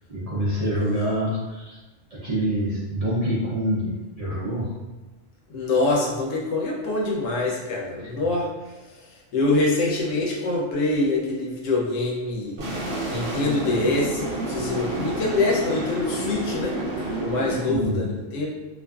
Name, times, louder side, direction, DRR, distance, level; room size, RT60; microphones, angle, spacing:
voice 1, 0.1-1.8 2.1-4.7 7.9-8.1 17.5-18.0, equal, 50° right, -9 dB, 0.5 m, -26 dB
voice 2, 5.5-12.6 13.1-16.8 17.2-18.5, left 2 dB, 90° left, -2 dB, 1.0 m, -25 dB
sound 1, 12.6-17.6, right 1 dB, 75° right, 1.0 m, -29 dB
2.5 x 2.5 x 2.3 m, 1.2 s
omnidirectional pair, 1.3 m